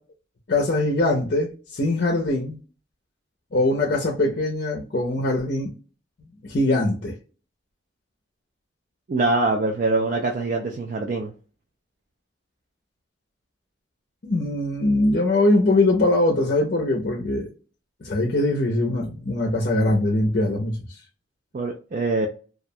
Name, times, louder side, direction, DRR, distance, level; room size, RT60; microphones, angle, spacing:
voice 1, 0.5-2.6 3.5-5.7 6.4-7.2 14.2-17.5 18.0-20.8, left 2 dB, 50° left, 0.5 m, -22 dB
voice 2, 9.1-11.3 21.5-22.3, right 3 dB, 40° right, 0.3 m, -24 dB
2.3 x 2.1 x 2.6 m
head